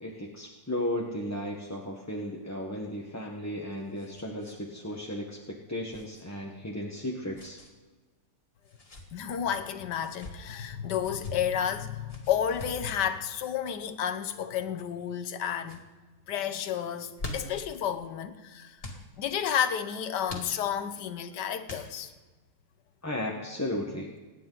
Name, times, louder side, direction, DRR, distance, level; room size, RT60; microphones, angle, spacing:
voice 1, 0.0-7.6 23.0-24.1, left 1 dB, 10° left, 1.1 m, -35 dB
sound 1, 3.4-4.6 4.9-5.0 5.9-6.2 7.3-7.7 8.6-9.1 9.9-10.4 11.0-11.3 12.1-12.8 14.0-14.3 15.0-15.3 15.6-15.8 16.9-17.7 18.8-19.0 20.3-20.9 21.6-22.2, left 2 dB, 35° left, 2.4 m, -43 dB
voice 2, 9.1-15.8 16.3-22.1, left 9 dB, 90° left, 1.5 m, -31 dB
26.5 x 10.0 x 4.0 m
omnidirectional pair, 1.8 m